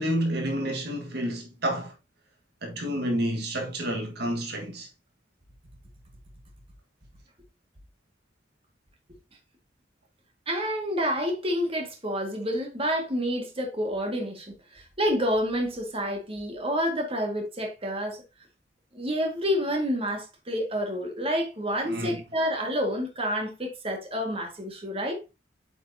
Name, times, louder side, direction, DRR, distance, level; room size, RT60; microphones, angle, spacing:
voice 1, 0.0-1.9 2.6-4.9 21.8-22.2, equal, 60° right, 1.6 m, -29 dB
voice 2, 10.5-18.2 18.9-25.2, equal, 30° right, 1.8 m, -29 dB
8.2 x 5.9 x 2.8 m
head